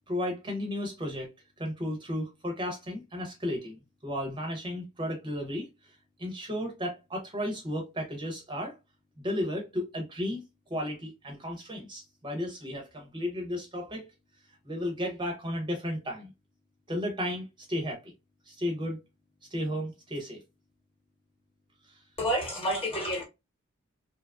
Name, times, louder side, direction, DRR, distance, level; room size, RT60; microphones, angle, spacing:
voice 1, 0.1-1.3 1.6-5.7 6.2-8.8 9.2-10.4 10.7-14.1 14.6-16.3 16.9-18.1 18.5-19.0 19.5-20.4, left 1 dB, 20° right, 0.6 m, -34 dB
voice 2, 22.2-23.2, equal, 25° left, 1.0 m, -29 dB
2.8 x 2.3 x 2.3 m
head